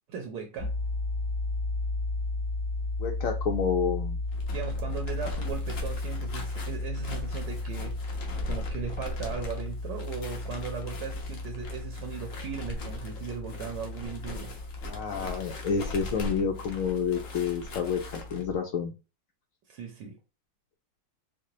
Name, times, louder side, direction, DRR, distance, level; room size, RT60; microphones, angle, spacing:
voice 1, 0.1-0.7 4.5-8.2 8.5-14.6 19.7-20.2, right 6 dB, 75° right, 1.3 m, -38 dB
sound 1, 0.6-18.6, left 2 dB, 20° left, 1.0 m, -35 dB
voice 2, 3.0-4.2 14.9-18.9, left 6 dB, 85° left, 0.7 m, -29 dB
sound 2, 4.3-18.4, left 2 dB, 55° left, 1.0 m, -41 dB
4.7 x 2.0 x 2.7 m
omnidirectional pair, 2.0 m